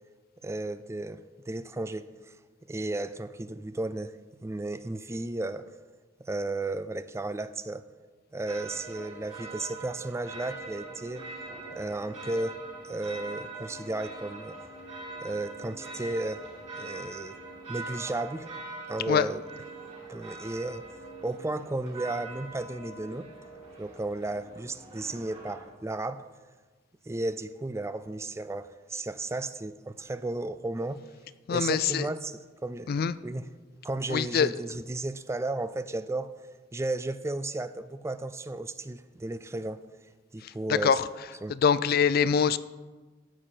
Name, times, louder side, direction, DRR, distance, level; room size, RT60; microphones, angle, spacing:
voice 1, 0.4-2.1 2.7-4.1 4.4-5.7 6.2-7.8 8.3-11.3 11.7-12.6 12.8-14.6 15.2-16.5 16.8-17.3 17.7-18.5 18.9-19.4 20.1-20.9 21.2-23.3 23.8-26.3 27.1-31.0 31.5-33.5 33.8-36.3 36.7-39.8 40.3-41.0 41.4-41.6, right 2 dB, 15° right, 0.4 m, -34 dB
sound 1, 8.5-25.6, right 3 dB, 35° right, 4.3 m, -43 dB
voice 2, 31.5-32.1 32.9-33.1 34.1-34.5 40.8-41.0 41.6-42.6, left 7 dB, 50° left, 0.4 m, -23 dB
14.0 x 8.6 x 4.4 m
head